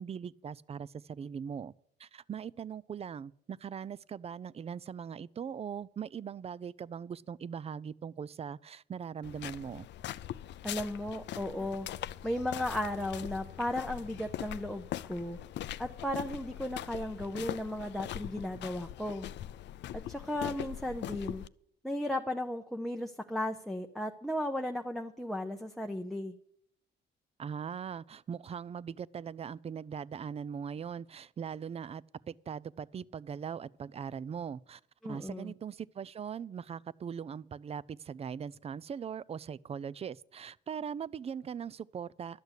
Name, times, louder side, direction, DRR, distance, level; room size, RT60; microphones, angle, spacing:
voice 1, 0.0-1.7 2.0-9.9 27.4-42.4, right 7 dB, 30° right, 0.4 m, -40 dB
sound 1, 9.2-21.5, left 12 dB, 65° left, 0.4 m, -41 dB
voice 2, 10.6-11.9 12.2-15.4 15.8-19.3 19.9-21.4 21.8-26.3 35.0-35.5, left 1 dB, ahead, 0.7 m, -35 dB
12.0 x 6.6 x 8.2 m
cardioid pair, 90°, 20 cm